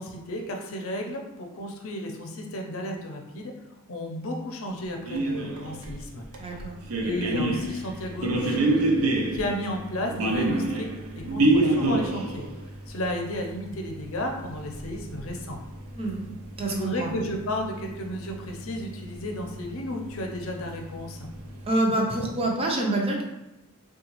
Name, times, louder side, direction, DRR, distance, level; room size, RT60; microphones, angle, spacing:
voice 1, 0.0-3.5 3.9-6.2 6.5-6.6 7.0-10.9 11.1-12.5 12.9-15.6 16.7-21.3, left 1 dB, 70° left, 2 dB, 0.6 m, -33 dB
sound 1, 5.1-21.7, right 2 dB, 75° right, 0.5 m, -29 dB
voice 2, 6.4-6.8 15.9-16.3 16.6-17.1 21.7-23.2, right 2 dB, 25° right, 0 dB, 0.5 m, -26 dB
3.8 x 2.3 x 3.0 m, 0.96 s
head